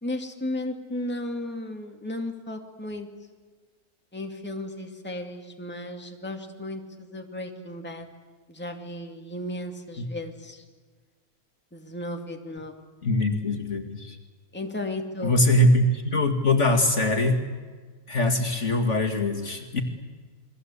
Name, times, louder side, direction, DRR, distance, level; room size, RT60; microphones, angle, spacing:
voice 1, 0.0-3.1 4.1-8.1 8.5-10.6 11.7-12.7 14.5-15.4, left 1 dB, 5° left, 3 dB, 2.2 m, -34 dB
voice 2, 13.0-14.2 15.2-17.4 18.1-19.8, left 1 dB, 45° left, 5 dB, 2.3 m, -22 dB
29.0 x 22.0 x 8.3 m, 1.4 s
omnidirectional pair, 1.7 m